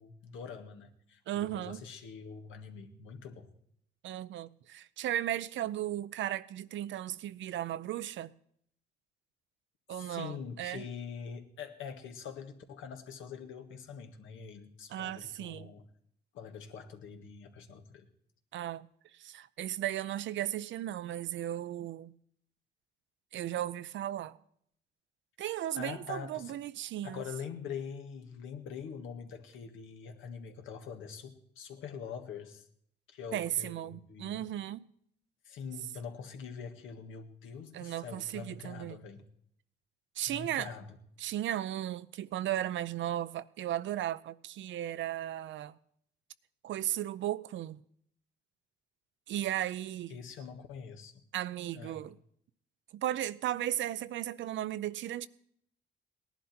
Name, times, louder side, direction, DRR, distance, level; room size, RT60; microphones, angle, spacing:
voice 1, 0.0-3.5 9.9-15.8 16.3-18.1 25.8-26.6 27.0-32.7 33.1-34.4 35.5-39.2 40.3-41.0 50.1-51.2 51.8-52.0, left 6 dB, 85° left, 1.7 m, -44 dB
voice 2, 1.3-1.8 4.0-8.3 9.9-10.8 14.9-15.7 18.5-18.9 19.1-22.1 23.3-24.4 25.4-27.2 33.3-34.8 37.7-39.0 40.2-40.7 41.2-45.8 46.6-47.8 49.3-50.2 51.3-52.2 52.9-55.3, right 12 dB, 70° right, 0.6 m, -36 dB
18.0 x 11.0 x 4.4 m
cardioid pair, 90°, 20 cm